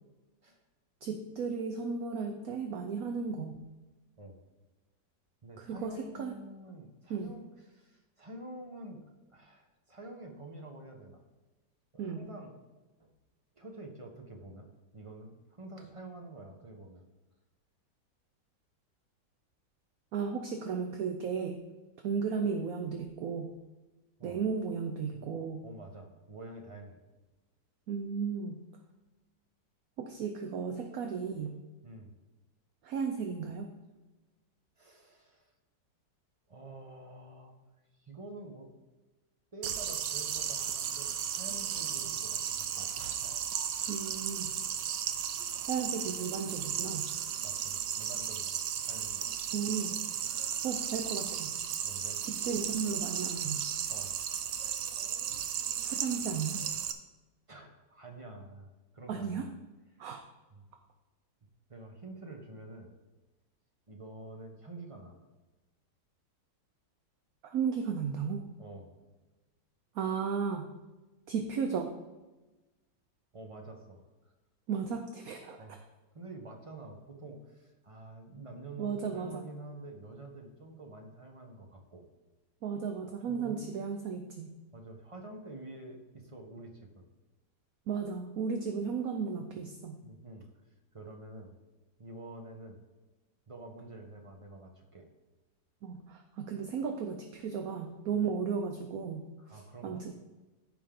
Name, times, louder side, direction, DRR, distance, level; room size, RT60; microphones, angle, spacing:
voice 1, 1.0-3.6 5.6-6.3 7.1-7.3 12.0-12.2 20.1-21.6 22.0-23.5 24.2-25.6 27.9-28.6 30.0-31.6 32.8-33.7 43.9-44.6 45.7-47.1 49.5-50.0 50.6-51.5 52.2-53.6 55.8-56.6 59.1-59.5 60.0-60.2 67.4-68.4 69.9-70.7 71.3-71.9 74.7-75.6 78.8-79.4 82.6-84.5 87.9-90.0 95.8-100.1, right 6 dB, 65° right, 5 dB, 1.0 m, -35 dB
voice 2, 5.4-11.2 11.9-12.6 13.0-13.1 13.6-14.7 14.9-17.0 24.2-24.4 25.1-25.2 25.6-27.0 31.8-32.1 34.8-35.5 36.5-37.6 38.0-38.8 39.5-42.9 47.4-48.6 48.8-49.4 51.8-52.2 53.9-54.2 57.5-59.5 60.5-60.7 61.7-62.9 63.9-65.2 68.6-69.0 73.3-74.1 75.6-75.8 76.1-82.1 83.3-83.7 84.7-87.1 90.0-90.5 90.9-91.5 92.0-92.8 93.5-95.1 99.4-100.1, right 2 dB, 25° right, 2 dB, 0.7 m, -48 dB
sound 1, 39.6-56.9, right 9 dB, 80° right, 1.3 m, -35 dB
14.5 x 5.2 x 3.8 m, 1.1 s
omnidirectional pair, 2.0 m